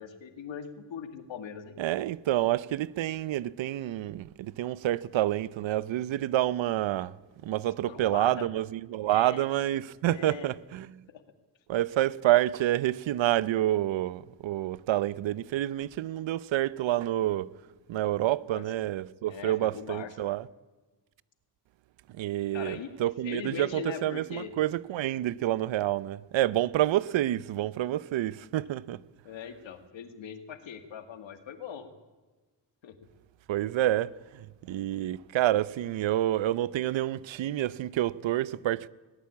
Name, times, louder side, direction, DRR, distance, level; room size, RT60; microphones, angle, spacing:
voice 1, 0.0-1.8 7.9-8.5 9.1-9.5 10.1-10.5 11.1-11.2 18.5-18.6 19.2-20.1 22.5-22.9 23.2-24.5 29.2-31.9 32.8-33.0, left 7 dB, 90° left, 2.2 m, -41 dB
voice 2, 1.8-7.1 7.4-11.0 11.7-17.5 17.9-20.5 22.1-29.0 33.5-38.9, right 14 dB, 90° right, 0.7 m, -28 dB
20.0 x 18.5 x 8.5 m
cardioid pair, 100°, 44 cm